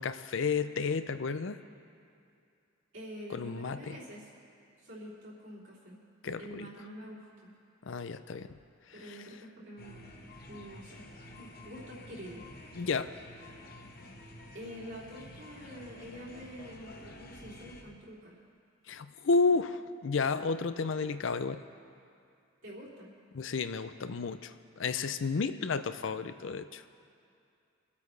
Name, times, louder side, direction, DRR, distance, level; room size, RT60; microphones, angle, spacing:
voice 1, 0.0-1.6 3.3-4.0 6.2-6.7 7.8-8.5 9.1-9.2 12.8-13.1 18.9-21.6 23.3-26.8, left 4 dB, 70° left, 11 dB, 0.5 m, -32 dB
voice 2, 2.9-4.3 4.8-6.0 6.4-7.5 8.9-10.1 10.5-11.0 11.3-12.9 14.5-18.4 22.6-23.1, equal, 65° right, -7 dB, 3.4 m, -46 dB
sound 1, 9.8-17.8, left 1 dB, 50° left, 1.0 m, -50 dB
25.0 x 8.5 x 3.3 m, 2.5 s
head